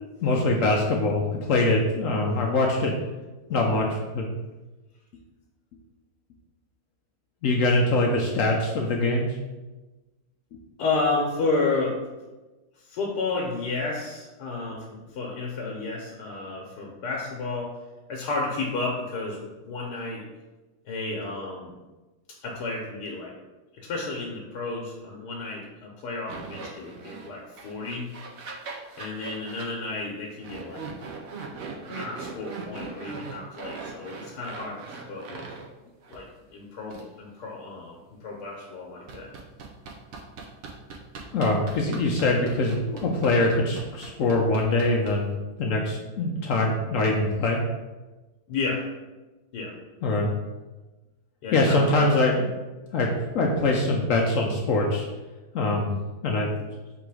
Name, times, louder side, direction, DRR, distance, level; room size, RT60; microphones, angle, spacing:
voice 1, 0.2-2.9 3.5-4.3 7.4-9.3 41.3-45.3 45.6-47.6 50.0-50.3 51.5-52.3 52.9-53.1 53.3-55.1 55.5-55.9 56.2-56.5, left 2 dB, 70° left, -1 dB, 0.8 m, -23 dB
voice 2, 10.8-12.0 12.8-17.7 18.1-20.2 20.8-21.7 22.4-23.3 23.7-28.1 29.0-30.9 31.8-35.5 36.1-39.3 48.5-48.9 49.5-49.8 51.4-52.1, left 3 dB, 90° left, -2 dB, 1.3 m, -31 dB
sound 1, 26.3-27.3 27.6-29.7 30.4-35.7 36.0-36.2 36.9-37.0 39.1-45.3, right 4 dB, 65° right, 1.0 m, -40 dB
3.8 x 3.0 x 4.7 m, 1.2 s
omnidirectional pair, 1.8 m